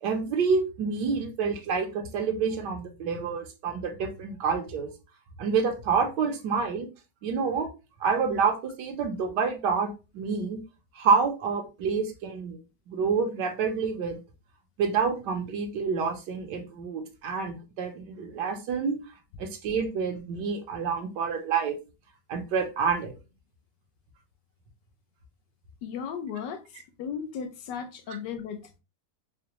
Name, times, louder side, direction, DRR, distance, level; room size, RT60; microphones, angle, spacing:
voice 1, 0.0-4.9 5.4-6.9 7.2-7.7 8.0-10.6 10.9-12.6 12.9-14.2 14.8-19.0 19.4-21.8 22.3-23.1, right 5 dB, 80° right, 1.3 m, -28 dB
voice 2, 25.8-26.6 27.0-28.8, left 7 dB, 80° left, 1.3 m, -35 dB
4.8 x 2.1 x 2.9 m
omnidirectional pair, 1.9 m